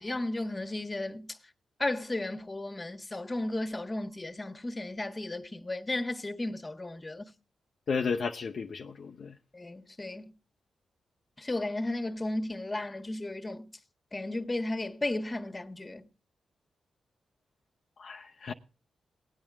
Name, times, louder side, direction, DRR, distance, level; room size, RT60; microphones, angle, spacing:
voice 1, 0.0-1.4 1.8-7.2 9.5-10.2 11.4-13.7 14.1-16.1, left 2 dB, 30° left, 1.5 m, -34 dB
voice 2, 7.9-9.3 18.0-18.5, left 5 dB, 65° left, 0.7 m, -33 dB
19.0 x 8.8 x 3.5 m
supercardioid pair, 45°, 0 cm